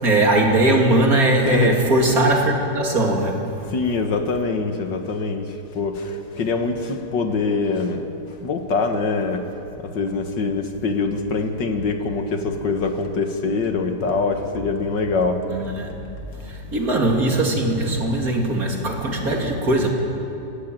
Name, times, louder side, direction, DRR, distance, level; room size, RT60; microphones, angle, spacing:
voice 1, 0.0-3.6 15.5-16.0 16.3-19.9, right 1 dB, 55° right, 0 dB, 3.3 m, -20 dB
voice 2, 1.4-1.9 3.7-5.5 5.7-8.1 8.4-9.4 9.8-15.4, left 4 dB, 80° left, 6 dB, 2.3 m, -24 dB
28.5 x 14.5 x 9.2 m, 2.8 s
omnidirectional pair, 1.9 m